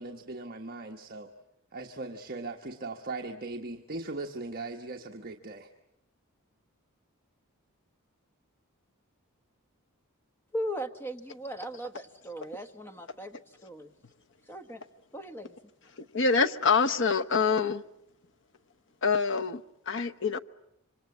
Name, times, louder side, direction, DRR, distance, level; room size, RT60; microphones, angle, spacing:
voice 1, 0.0-1.3 1.7-5.7, right 2 dB, 40° right, 1.3 m, -39 dB
voice 2, 10.5-13.4 13.6-13.9 14.5-14.8 15.1-15.5, equal, 10° left, 1.2 m, -38 dB
voice 3, 15.9-17.8 19.0-20.4, left 5 dB, 55° left, 1.0 m, -26 dB
27.0 x 25.5 x 8.5 m
head